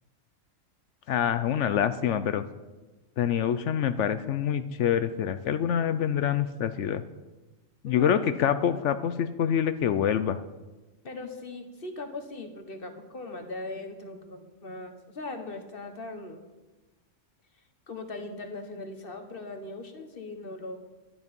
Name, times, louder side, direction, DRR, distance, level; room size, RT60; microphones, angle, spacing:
voice 1, 1.1-2.4 3.2-7.0 7.8-10.4, left 9 dB, 70° left, 12 dB, 0.9 m, -26 dB
voice 2, 7.8-8.3 8.7-8.8 11.0-16.4 17.9-20.8, left 2 dB, 45° left, 6 dB, 1.4 m, -39 dB
12.0 x 11.0 x 5.3 m, 1.2 s
omnidirectional pair, 1.3 m